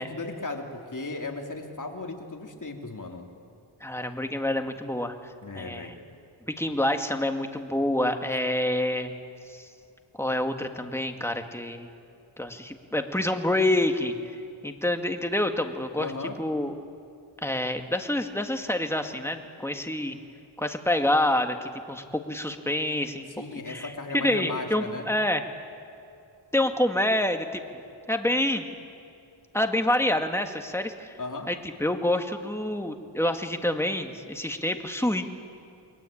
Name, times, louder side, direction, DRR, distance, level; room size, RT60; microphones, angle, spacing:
voice 1, 0.0-3.3 5.4-6.0 16.0-16.4 23.4-25.1 31.2-31.5, left 3 dB, 40° left, 2 dB, 3.4 m, -36 dB
voice 2, 3.8-5.9 6.5-9.1 9.5-9.7 10.2-11.9 12.4-14.1 14.6-16.1 16.4-16.8 17.4-20.2 20.6-23.3 23.7-25.4 26.5-27.6 28.1-28.6 29.5-31.2 31.5-35.3, left 1 dB, 5° left, 5 dB, 2.0 m, -27 dB
29.0 x 21.5 x 8.7 m, 2.6 s
wide cardioid pair, 75°, 49 cm